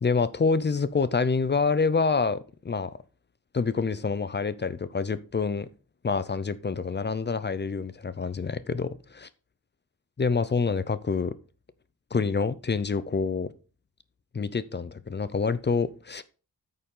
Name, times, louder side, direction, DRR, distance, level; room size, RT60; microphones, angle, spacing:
voice 1, 0.0-2.4 2.6-3.0 3.5-5.7 6.0-9.3 10.2-11.3 12.1-13.5 14.3-16.2, left 4 dB, 30° left, 0.5 m, -27 dB
8.8 x 6.9 x 3.8 m
wide cardioid pair, 175°, 38 cm